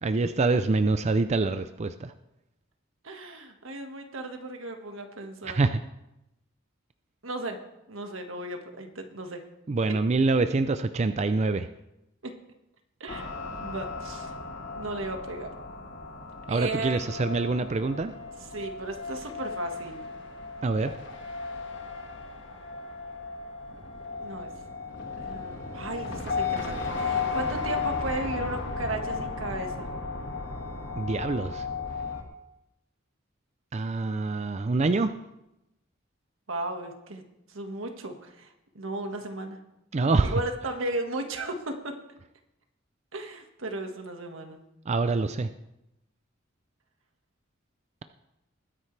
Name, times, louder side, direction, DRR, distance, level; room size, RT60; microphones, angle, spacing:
voice 1, 0.0-2.1 5.4-5.8 9.7-11.7 16.5-18.1 20.6-20.9 31.0-31.7 33.7-35.1 39.9-40.4 44.9-45.5, right 3 dB, 35° right, 10 dB, 0.4 m, -25 dB
voice 2, 3.0-5.6 7.2-7.6 7.9-9.4 12.2-12.3 13.0-14.3 14.7-15.5 16.5-17.2 18.5-20.1 24.2-24.5 25.2-29.9 36.5-37.2 37.5-39.6 40.2-41.9 43.1-44.6, right 2 dB, 85° right, 4 dB, 1.7 m, -35 dB
sound 1, 13.1-32.2, left 4 dB, 65° left, 1.8 m, -35 dB
21.0 x 10.0 x 3.3 m, 0.88 s
head